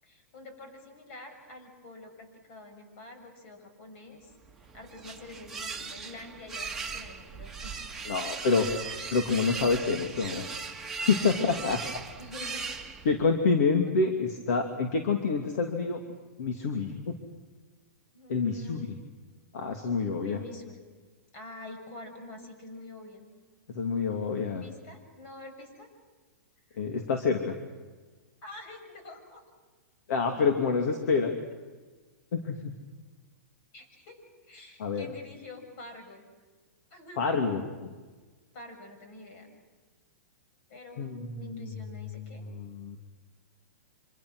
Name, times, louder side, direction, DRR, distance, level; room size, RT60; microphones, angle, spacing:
voice 1, 0.0-4.3 4.7-7.9 8.2-8.4 11.1-11.6 12.2-12.9 13.9-14.1 18.1-18.9 20.2-20.9 21.3-23.2 24.6-25.9 26.7-26.8 28.4-29.4 33.7-36.3 36.9-37.2 38.5-39.5 40.7-42.4, left 2 dB, 50° left, 6 dB, 7.0 m, -47 dB
sound 1, 4.4-13.3, right 5 dB, 5° right, 1.8 m, -38 dB
voice 2, 8.0-8.7 9.1-10.4 11.0-11.8 13.0-16.0 16.4-17.2 18.3-19.0 19.5-20.4 23.7-24.6 26.8-27.5 30.1-31.3 32.3-32.7 34.8-35.1 37.2-37.9 41.0-41.8 42.1-42.2 42.5-43.0, left 4 dB, 65° left, 3 dB, 2.8 m, -27 dB
27.0 x 26.5 x 6.4 m, 1.3 s
hypercardioid pair, 155°, 9 cm